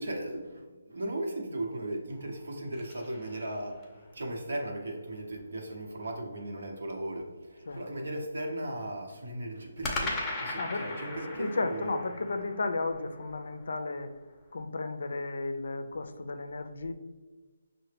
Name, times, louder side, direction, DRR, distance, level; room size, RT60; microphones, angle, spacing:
voice 1, 0.0-3.8 4.1-12.0, right 1 dB, 75° right, 1 dB, 0.9 m, -37 dB
sound 1, 2.1-4.0 9.8-14.1, left 2 dB, 15° left, 0.6 m, -39 dB
voice 2, 10.6-10.9 11.3-14.1 14.5-16.9, left 3 dB, 70° left, 7 dB, 0.4 m, -34 dB
5.5 x 2.1 x 3.3 m, 1.3 s
hypercardioid pair, 155°, 0 cm